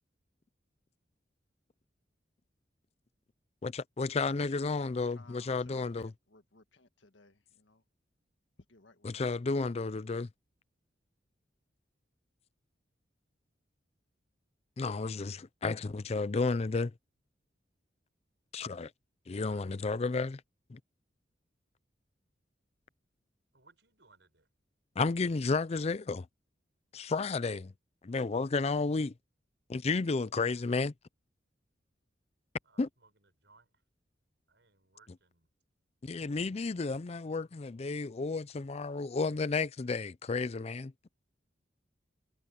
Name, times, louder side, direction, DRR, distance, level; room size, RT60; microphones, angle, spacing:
voice 1, 3.6-6.1 9.0-10.3 14.8-16.9 18.5-18.9 19.3-20.4 20.7-20.8 25.0-26.3 26.9-27.7 28.0-29.1 29.7-30.9 32.8-32.9 36.0-40.9, left 4 dB, 35° left, 0.4 m, -32 dB
voice 2, 4.4-7.8 8.7-9.4, left 3 dB, 85° left, 1.8 m, -60 dB
voice 3, 19.4-20.3 23.5-24.5 32.6-33.1 33.4-33.7 34.5-35.5 36.6-37.0, right 3 dB, 70° right, 7.2 m, -64 dB
head